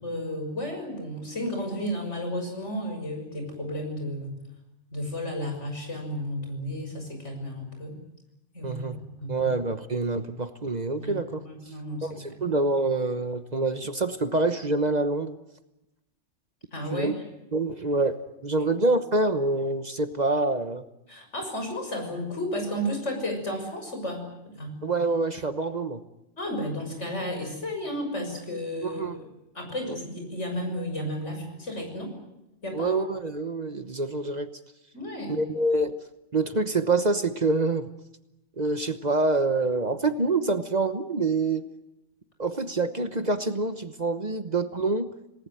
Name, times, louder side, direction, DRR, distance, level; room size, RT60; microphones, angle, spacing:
voice 1, 0.0-4.4 4.9-8.0 8.5-9.5 11.0-12.4 16.7-17.2 21.1-24.8 26.4-29.2 29.5-32.1 32.6-32.9 34.9-35.4, equal, 75° left, 4 dB, 6.7 m, -33 dB
voice 2, 8.6-9.0 9.3-11.4 12.0-15.4 16.9-17.1 17.5-18.2 18.4-20.8 24.8-26.0 28.8-29.2 32.7-34.5 35.3-36.0 36.3-37.9 38.6-41.6 42.4-45.1, right 2 dB, 35° right, 9 dB, 1.2 m, -26 dB
27.5 x 19.0 x 9.2 m, 0.91 s
omnidirectional pair, 1.2 m